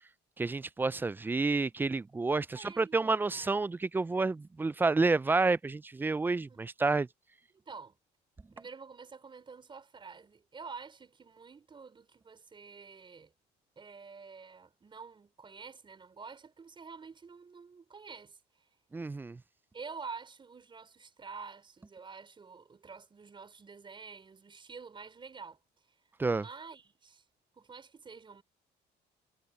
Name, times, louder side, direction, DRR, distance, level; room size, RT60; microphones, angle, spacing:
voice 1, 0.4-7.1 18.9-19.4 26.2-26.5, right 3 dB, 10° right, 0.3 m, -29 dB
voice 2, 2.5-3.5 6.5-6.6 7.6-8.0 8.5-13.3 13.8-18.4 19.7-25.6 26.3-27.2 27.6-28.4, right 5 dB, 30° right, 5.1 m, -48 dB
cardioid pair, 110°, 17 cm